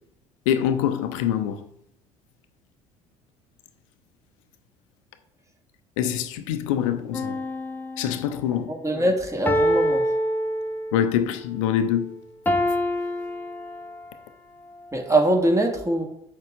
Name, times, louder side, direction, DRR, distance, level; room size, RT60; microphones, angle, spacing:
voice 1, 0.5-1.6 6.0-7.4 8.0-8.7 10.9-12.1, left 9 dB, 65° left, 0.6 m, -24 dB
sound 1, 7.1-8.5 9.5-11.1 12.5-14.2 14.8-14.9, equal, 10° left, 0.9 m, -26 dB
voice 2, 8.7-10.1 14.9-16.0, right 1 dB, 15° right, 1.8 m, -22 dB
7.6 x 6.6 x 3.6 m
figure-of-eight pair, 60°, 17 cm